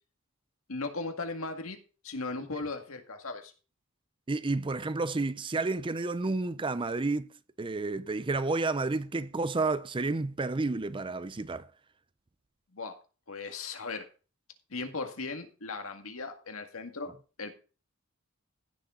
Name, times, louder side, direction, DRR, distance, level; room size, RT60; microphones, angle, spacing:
voice 1, 0.7-1.8 2.0-3.5 12.7-12.9 13.3-14.1 14.7-17.1 17.4-17.5, left 3 dB, 80° left, 1.9 m, -37 dB
voice 2, 4.3-7.3 7.6-11.7, right 3 dB, 25° right, 0.5 m, -30 dB
15.5 x 6.8 x 3.8 m
head